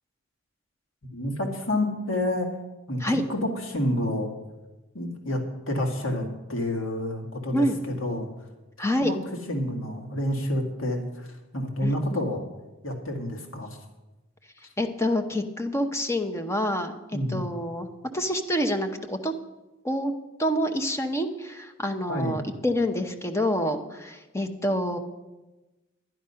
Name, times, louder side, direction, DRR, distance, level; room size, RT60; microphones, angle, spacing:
voice 1, 1.1-2.5 2.9-4.3 4.9-5.4 5.7-7.7 8.0-8.3 9.0-9.2 9.5-12.4 12.8-13.8 17.1-17.4 22.1-22.4, left 1 dB, 75° left, 2 dB, 2.1 m, -29 dB
voice 2, 8.8-9.1 11.8-12.0 14.8-17.0 17.3-17.9 18.1-19.3 19.8-20.1 20.4-25.0, equal, 15° left, 6 dB, 0.8 m, -27 dB
11.0 x 11.0 x 5.7 m, 1.1 s
head